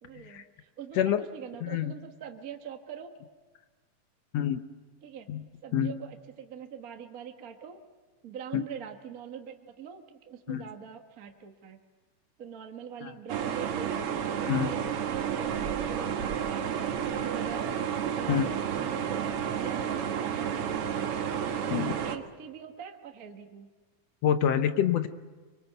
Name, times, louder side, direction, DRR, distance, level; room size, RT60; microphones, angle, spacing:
voice 1, 0.0-3.1 5.0-5.3 5.6-7.8 8.2-11.8 12.4-14.1 14.4-16.7 17.1-17.8 18.1-20.0 20.3-21.2 22.0-23.7, right 7 dB, 40° right, 4 dB, 1.2 m, -43 dB
voice 2, 1.6-1.9 4.3-4.6 5.3-5.4 5.7-5.9 8.5-8.6 10.5-10.7 13.0-13.1 14.5-14.7 18.3-18.5 21.7-21.9 24.2-25.1, left 9 dB, 65° left, 9 dB, 1.7 m, -26 dB
sound 1, 13.3-22.2, right 8 dB, 60° right, 1.8 m, -31 dB
24.5 x 24.0 x 8.0 m, 1.3 s
omnidirectional pair, 3.7 m